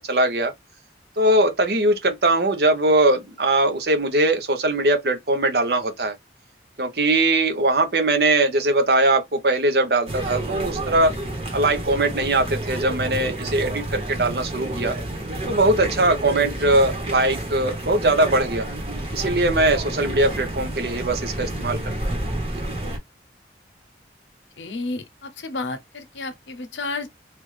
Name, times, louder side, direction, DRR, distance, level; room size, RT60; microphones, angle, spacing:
voice 1, 0.1-0.5 1.2-6.2 6.8-11.1 11.5-15.0 15.4-18.7 19.1-21.9, right 2 dB, 60° right, 0.8 m, -21 dB
sound 1, 10.1-23.0, right 1 dB, 35° right, 1.2 m, -30 dB
voice 2, 24.6-27.1, left 3 dB, 85° left, 0.8 m, -31 dB
3.4 x 2.5 x 3.1 m
head